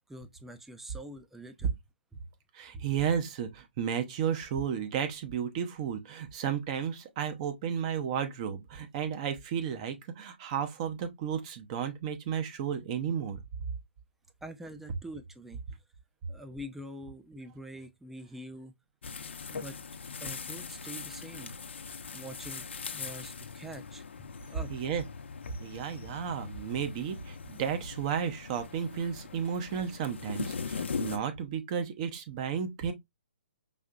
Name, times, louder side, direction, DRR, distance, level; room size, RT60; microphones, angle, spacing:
voice 1, 0.1-1.7 2.7-2.9 14.4-15.8 16.3-18.7 19.5-19.7 20.2-21.5 22.1-24.1 24.5-24.7, equal, 5° right, 0.5 m, -45 dB
voice 2, 2.5-13.4 24.7-25.0 25.6-32.9, right 8 dB, 35° right, 0.8 m, -33 dB
sound 1, 19.0-31.2, left 5 dB, 75° left, 0.7 m, -40 dB
5.1 x 2.8 x 2.4 m
hypercardioid pair, 140°, 6 cm